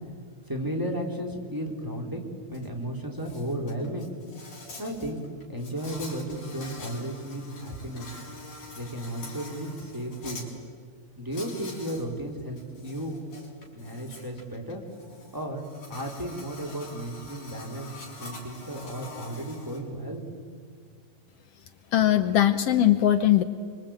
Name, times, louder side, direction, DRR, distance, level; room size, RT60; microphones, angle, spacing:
voice 1, 0.5-2.2 2.5-4.1 4.8-5.2 5.5-8.1 8.7-10.4 11.2-13.2 13.7-14.8 15.3-15.6 15.9-17.9 18.2-20.2, right 1 dB, 5° right, 1 dB, 3.5 m, -34 dB
Insect, 2.5-2.7 3.0-10.5 11.3-12.1 12.4-19.8, left 3 dB, 60° left, 6.7 m, -45 dB
voice 2, 21.9-23.4, left 11 dB, 90° left, 11 dB, 1.3 m, -20 dB
26.5 x 25.0 x 9.0 m, 2.1 s
omnidirectional pair, 4.0 m